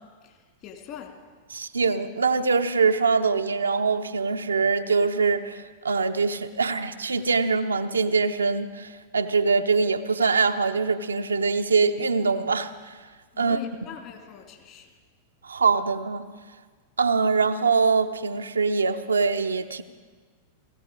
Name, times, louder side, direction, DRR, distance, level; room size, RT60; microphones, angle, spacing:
voice 1, 0.6-1.1 13.3-14.9, left 9 dB, 40° left, 3 dB, 2.6 m, -42 dB
voice 2, 1.5-13.0 13.4-13.6 15.4-16.2 17.0-19.8, right 4 dB, 75° right, 7 dB, 0.7 m, -23 dB
17.5 x 16.0 x 5.2 m, 1.5 s
figure-of-eight pair, 95°, 0 cm